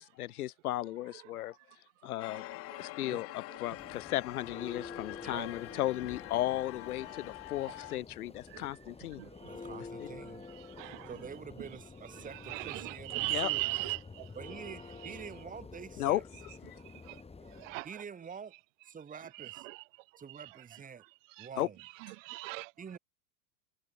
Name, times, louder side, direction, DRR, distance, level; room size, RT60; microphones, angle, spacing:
voice 1, 0.0-1.5 2.0-2.4 2.8-9.2 10.0-10.1 13.3-13.5 16.0-16.2 16.7-16.8 21.6-21.7, left 14 dB, 80° left, 1.4 m, -35 dB
sound 1, 2.2-8.0, left 20 dB, 30° left, 0.6 m, -45 dB
Church bell, 3.6-17.8, left 4 dB, 15° left, 5.2 m, -49 dB
voice 2, 5.2-5.5 9.4-10.4 11.1-13.7 14.4-16.2 17.8-18.6 18.8-19.7 20.2-21.0 21.4-21.8 22.8-23.0, right 6 dB, 20° right, 1.6 m, -46 dB
voice 3, 10.8-11.1 12.5-14.3 17.1-17.2 17.6-17.9 19.7-19.8 21.4-21.5 22.2-22.7, right 24 dB, 60° right, 0.7 m, -36 dB
hypercardioid pair, 105°, 44 cm